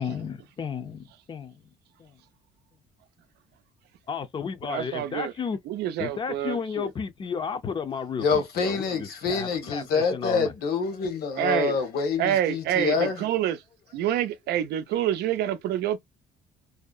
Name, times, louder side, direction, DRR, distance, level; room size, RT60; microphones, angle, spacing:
voice 1, 0.0-1.7 2.0-2.1 4.1-5.6 6.0-10.5, left 6 dB, 30° left, 0.5 m, -33 dB
voice 2, 4.7-5.3 5.7-6.9 11.4-11.8 12.2-13.6 13.9-16.0, right 11 dB, 75° right, 0.5 m, -27 dB
voice 3, 8.2-13.2, left 5 dB, 65° left, 1.0 m, -26 dB
2.7 x 2.0 x 2.3 m
cardioid pair, 110°, 17 cm